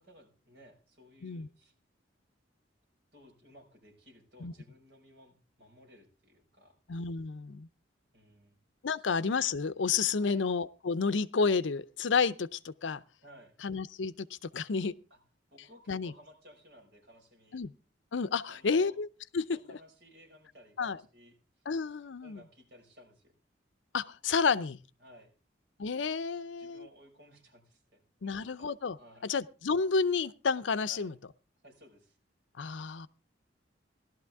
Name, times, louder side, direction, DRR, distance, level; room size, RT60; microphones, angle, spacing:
voice 1, 0.0-1.7 3.1-6.7 8.1-8.6 9.0-9.1 10.2-10.5 13.2-13.6 15.1-15.2 15.5-17.6 18.5-19.0 19.5-21.6 22.2-23.3 25.0-25.3 26.6-28.7 29.0-29.3 30.9-31.1 31.6-32.2, equal, 60° right, 5.4 m, -57 dB
voice 2, 6.9-7.7 8.8-13.0 13.6-14.3 14.5-14.9 15.9-16.1 17.5-17.7 18.1-19.1 19.3-19.6 20.8-21.0 21.7-22.4 23.9-24.8 25.8-26.9 28.2-29.0 29.2-31.1 32.6-33.1, left 5 dB, 75° left, 0.6 m, -30 dB
17.0 x 12.0 x 3.5 m
head